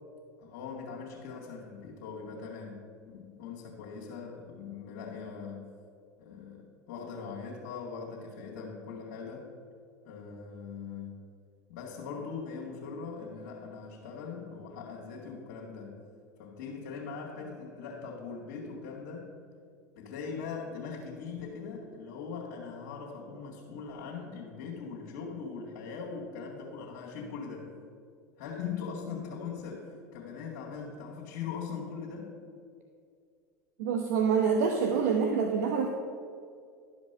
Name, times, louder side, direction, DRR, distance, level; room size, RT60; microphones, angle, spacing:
voice 1, 0.4-5.7 6.2-9.5 10.0-11.3 11.7-16.0 16.4-19.3 19.9-27.7 28.4-32.3, left 5 dB, 70° left, -5 dB, 2.2 m, -41 dB
voice 2, 33.8-35.9, right 6 dB, 70° right, 3 dB, 1.0 m, -26 dB
12.0 x 5.2 x 6.8 m, 2.3 s
hypercardioid pair, 90°, 9 cm